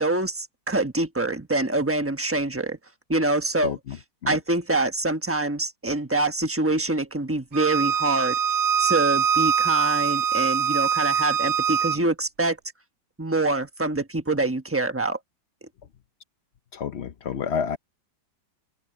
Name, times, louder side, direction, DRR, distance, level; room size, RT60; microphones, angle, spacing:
voice 1, 0.0-2.8 3.1-3.7 4.3-8.4 8.8-12.6 13.2-15.2, right 2 dB, 10° right, 0.7 m, -25 dB
voice 2, 3.6-4.0 4.2-4.4 16.7-17.8, left 7 dB, 75° left, 0.6 m, -29 dB
Bowed string instrument, 7.5-12.0, right 7 dB, 70° right, 0.6 m, -23 dB
open air
omnidirectional pair, 2.1 m